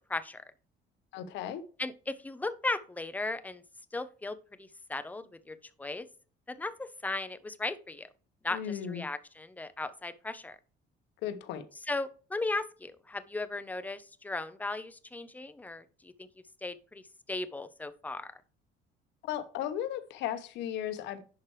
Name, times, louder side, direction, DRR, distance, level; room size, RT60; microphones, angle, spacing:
voice 1, 0.1-0.4 1.8-3.6 3.9-6.1 6.5-8.1 8.4-8.6 8.9-10.6 11.9-16.3 16.6-17.0 17.3-18.3, left 2 dB, 10° left, 0.6 m, -36 dB
voice 2, 1.1-1.6 8.5-9.0 11.2-11.6 19.2-21.2, left 10 dB, 90° left, 1.0 m, -35 dB
10.5 x 4.5 x 3.2 m
cardioid pair, 145°, 18 cm